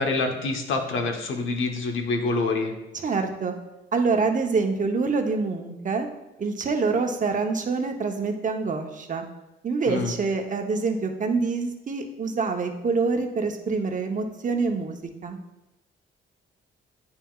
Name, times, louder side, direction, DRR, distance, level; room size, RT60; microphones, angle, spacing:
voice 1, 0.0-2.7 9.9-10.1, left 3 dB, 75° left, 3 dB, 1.0 m, -26 dB
voice 2, 2.9-3.5 3.9-6.1 6.4-9.2 9.6-15.4, right 4 dB, 40° right, 5 dB, 0.8 m, -26 dB
8.9 x 5.6 x 2.4 m, 0.97 s
cardioid pair, 85°, 20 cm